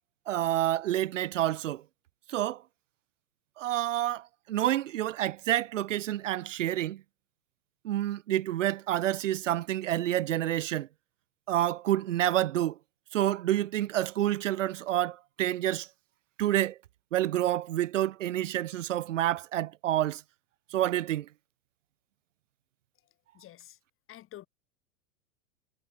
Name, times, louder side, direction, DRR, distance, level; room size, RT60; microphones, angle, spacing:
voice 1, 0.3-1.8 2.3-2.6 3.6-7.0 7.8-10.9 11.5-12.8 13.1-15.9 16.4-16.8 17.1-20.2 20.7-21.3, right 13 dB, 85° right, 0.6 m, -28 dB
voice 2, 23.3-23.8 24.1-24.5, left 13 dB, 35° left, 3.1 m, -48 dB
hypercardioid pair, 100°, 37 cm